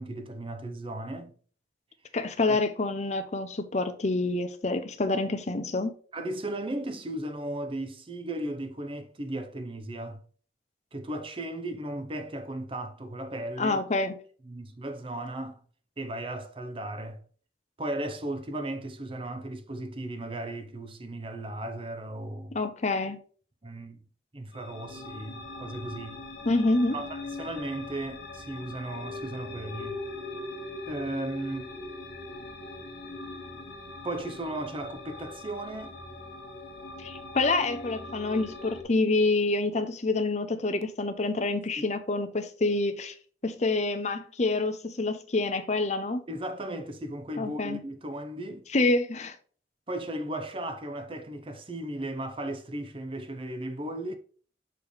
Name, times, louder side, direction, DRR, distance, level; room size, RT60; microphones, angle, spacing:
voice 1, 0.0-1.3 2.5-2.6 6.1-10.2 10.9-13.8 14.4-15.6 16.0-17.2 17.8-22.6 23.6-24.0 24.3-26.2 26.9-30.0 30.9-31.7 34.0-35.9 41.8-41.9 46.3-48.7 49.9-54.1, right 1 dB, 30° right, 0.6 m, -36 dB
voice 2, 2.1-5.9 13.6-14.2 22.5-23.2 26.4-27.0 37.0-43.1 43.4-46.2 47.4-47.8 48.7-49.3, left 2 dB, 40° left, 0.6 m, -27 dB
sound 1, 24.5-38.8, left 2 dB, 70° left, 1.4 m, -41 dB
6.7 x 3.2 x 5.1 m
head